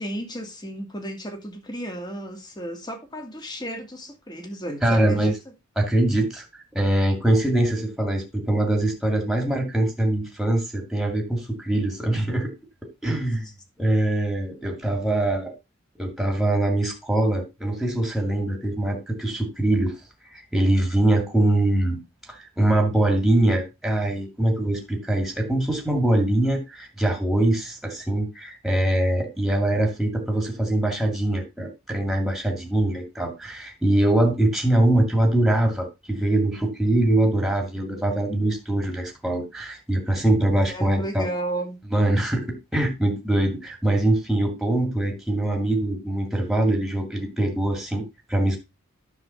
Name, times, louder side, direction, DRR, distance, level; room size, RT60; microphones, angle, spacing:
voice 1, 0.0-5.3 40.7-41.8, right 1 dB, 20° left, 2.1 m, -33 dB
voice 2, 4.8-5.3 5.8-12.5 13.0-13.4 13.8-15.5 16.0-20.0 20.3-22.0 22.3-41.3 41.9-48.6, right 1 dB, ahead, 2.1 m, -23 dB
9.8 x 3.6 x 6.8 m
head